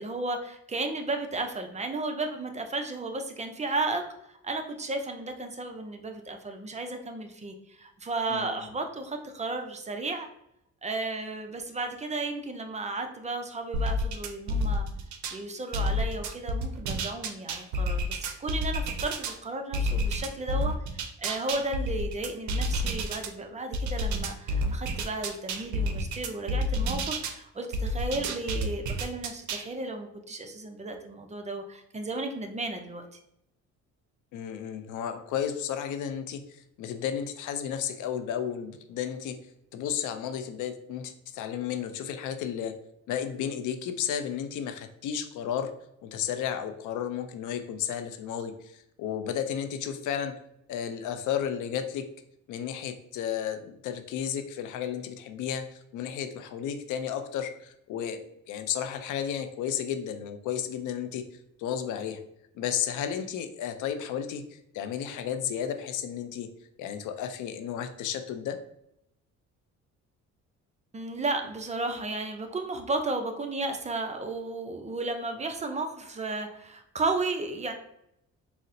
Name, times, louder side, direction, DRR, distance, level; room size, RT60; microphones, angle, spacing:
voice 1, 0.0-4.0 4.3-10.3 10.8-14.9 15.3-33.0 70.9-77.7, right 2 dB, 25° right, 5 dB, 0.4 m, -34 dB
voice 2, 8.3-8.6 34.3-39.4 39.7-42.7 43.1-45.7 46.0-50.3 50.7-52.1 52.5-58.2 58.5-61.3 61.6-62.2 62.5-66.5 66.8-68.6, left 9 dB, 80° left, 8 dB, 0.5 m, -33 dB
sound 1, 13.7-15.4 15.7-19.4 19.7-23.3 23.7-27.4 27.7-29.7, equal, 75° right, 0.5 m, -30 dB
4.0 x 2.0 x 2.5 m, 0.78 s
cardioid pair, 90°, 30 cm